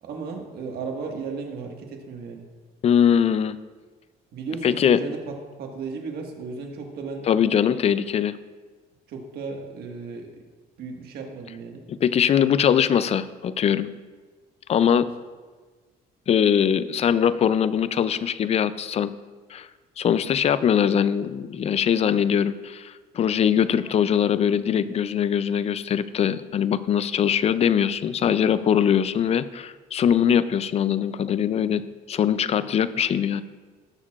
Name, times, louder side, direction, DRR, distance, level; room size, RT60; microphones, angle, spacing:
voice 1, 0.0-2.5 4.3-7.3 9.1-10.3 10.8-11.8 14.8-15.0, right 4 dB, 70° right, 1 dB, 1.7 m, -35 dB
voice 2, 2.8-3.6 4.6-5.0 7.3-8.4 11.9-13.9 14.7-15.1 16.3-19.1 19.5-19.7 20.0-31.8 32.1-33.4, left 8 dB, 40° left, 15 dB, 0.4 m, -22 dB
19.0 x 6.5 x 2.4 m, 1.4 s
cardioid pair, 110°, 17 cm